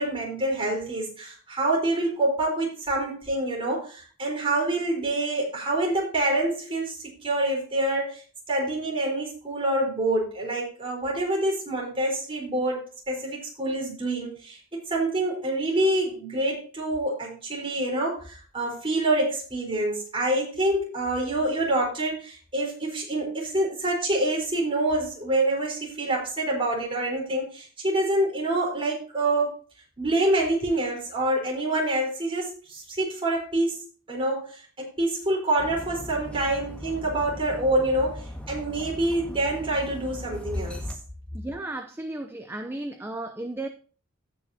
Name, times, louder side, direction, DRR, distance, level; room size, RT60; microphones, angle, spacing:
voice 1, 0.0-8.2 8.5-14.6 14.9-29.5 30.0-33.8 34.1-40.8, right 1 dB, 25° right, 4.1 m, -26 dB
Dog, 35.6-41.0, left 1 dB, 5° left, 1.7 m, -39 dB
voice 2, 41.3-43.7, right 2 dB, 10° right, 0.6 m, -34 dB
17.0 x 5.9 x 2.8 m
head